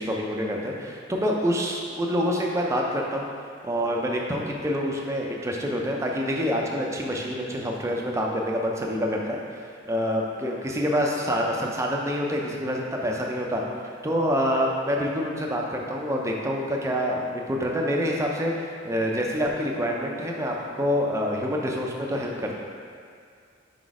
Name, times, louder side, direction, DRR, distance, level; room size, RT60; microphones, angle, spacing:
voice 1, 0.0-3.3 3.6-13.6 14.0-22.5, equal, 15° right, -1 dB, 0.5 m, -27 dB
5.0 x 4.0 x 4.8 m, 2.2 s
head